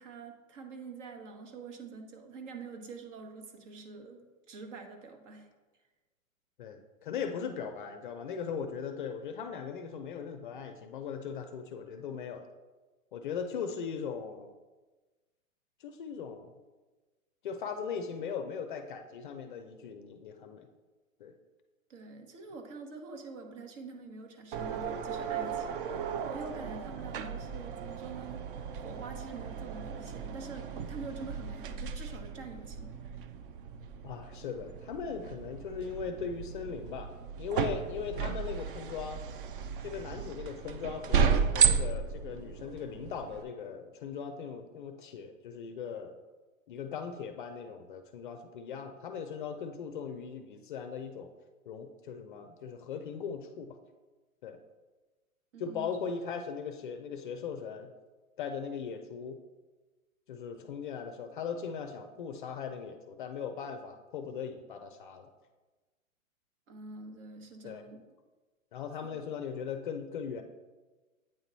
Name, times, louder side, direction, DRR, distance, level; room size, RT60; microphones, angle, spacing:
voice 1, 0.0-5.5 21.9-25.8 26.3-28.5 28.8-33.0 55.5-56.0 66.7-68.0 69.1-69.2, right 4 dB, 60° right, 4 dB, 1.3 m, -46 dB
voice 2, 6.6-12.5 13.1-14.5 15.8-16.6 17.4-20.7 21.2-21.3 34.0-37.1 37.4-39.2 39.8-46.2 46.7-51.3 51.7-53.8 54.4-54.6 55.6-57.9 58.4-59.4 60.3-65.3 67.6-67.8 68.7-70.4, left 6 dB, 40° left, 7 dB, 0.4 m, -39 dB
sound 1, 24.5-43.4, right 6 dB, 40° right, 0.4 m, -34 dB
8.7 x 2.9 x 4.0 m, 1.2 s
hypercardioid pair, 135°, 42 cm